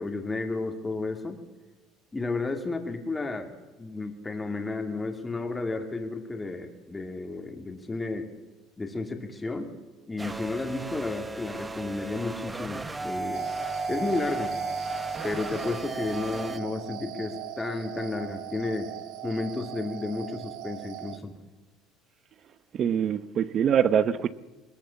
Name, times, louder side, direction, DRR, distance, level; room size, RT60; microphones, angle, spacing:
voice 1, 0.0-1.4 2.1-8.3 8.8-9.7 10.1-13.5 13.9-14.6 15.2-18.9 19.2-21.3, left 3 dB, 15° left, 2.7 m, -32 dB
sound 1, 10.2-16.6, right 3 dB, 15° right, 1.0 m, -35 dB
sound 2, 13.3-21.2, right 14 dB, 75° right, 1.4 m, -39 dB
voice 2, 22.7-24.3, right 8 dB, 40° right, 1.0 m, -24 dB
21.5 x 20.0 x 7.2 m
cardioid pair, 125°, 0 cm